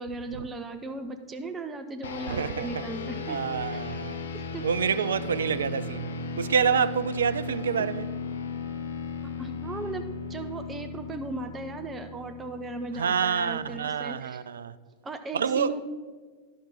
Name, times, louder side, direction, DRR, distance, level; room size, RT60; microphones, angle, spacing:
voice 1, 0.0-3.4 3.7-3.9 4.3-4.6 7.8-7.9 9.4-14.4 15.0-15.8, right 2 dB, 20° right, 0.6 m, -37 dB
sound 1, 2.0-13.7, left 4 dB, 65° left, 0.6 m, -36 dB
voice 2, 2.3-2.8 3.3-4.2 4.6-6.1 6.4-8.1 12.9-14.7 15.3-15.7, right 7 dB, 65° right, 0.3 m, -27 dB
11.5 x 6.0 x 4.1 m
figure-of-eight pair, 90°, 0 cm